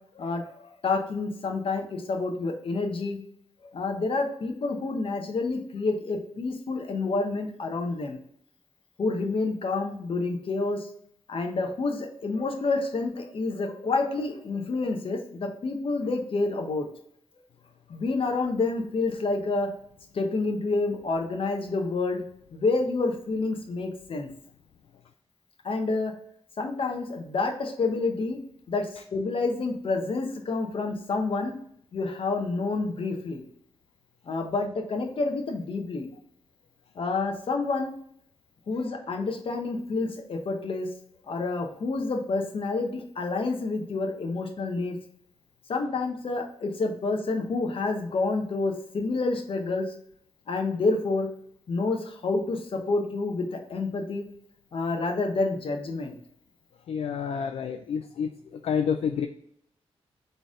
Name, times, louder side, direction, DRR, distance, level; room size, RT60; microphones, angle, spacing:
voice 1, 0.1-3.2 3.6-8.2 9.0-10.9 11.3-16.9 17.9-19.7 20.1-22.2 22.5-24.3 25.6-26.1 26.6-28.4 28.7-31.5 31.9-33.4 34.3-36.1 36.9-37.9 38.7-40.9 41.3-45.0 45.7-49.9 50.5-51.3 51.7-54.2 54.7-56.1, left 3 dB, 55° left, 4 dB, 1.0 m, -28 dB
voice 2, 56.9-58.3 58.6-59.3, left 7 dB, 75° left, 6 dB, 0.4 m, -28 dB
4.3 x 3.4 x 3.7 m, 0.68 s
cardioid pair, 75°, 11 cm